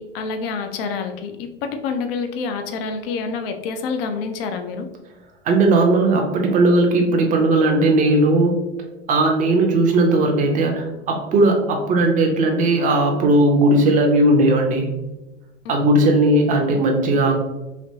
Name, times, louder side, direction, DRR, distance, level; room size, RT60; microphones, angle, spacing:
voice 1, 0.0-4.9, left 5 dB, 55° left, 7 dB, 0.6 m, -27 dB
voice 2, 5.4-8.5 9.1-14.9 15.7-17.4, right 2 dB, 25° right, 2 dB, 0.6 m, -17 dB
3.1 x 2.8 x 2.7 m, 1.0 s
figure-of-eight pair, 85°, 35 cm